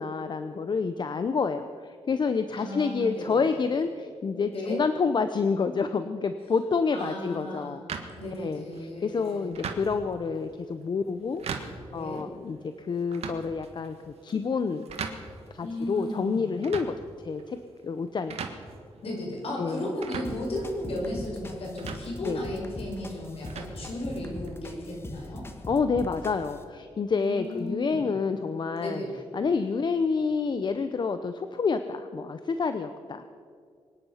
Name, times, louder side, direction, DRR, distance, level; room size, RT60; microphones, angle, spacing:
voice 1, 0.0-7.8 8.4-11.4 11.9-14.0 14.2-14.8 15.5-17.0 17.2-17.6 17.8-18.4 19.6-19.9 22.3-22.4 25.7-29.0 29.3-33.2, left 5 dB, 45° left, 9 dB, 0.7 m, -28 dB
voice 2, 2.6-3.6 4.5-4.8 6.9-9.5 11.9-12.2 15.6-16.6 19.0-25.5 27.2-28.1 28.8-29.1, left 1 dB, 65° left, -2 dB, 5.5 m, -35 dB
sound 1, 7.9-24.5, right 5 dB, 80° right, 1.6 m, -42 dB
sound 2, 20.2-26.6, left 1 dB, 25° left, 1.5 m, -41 dB
24.5 x 10.0 x 5.7 m, 2.2 s
wide cardioid pair, 110°, 10 cm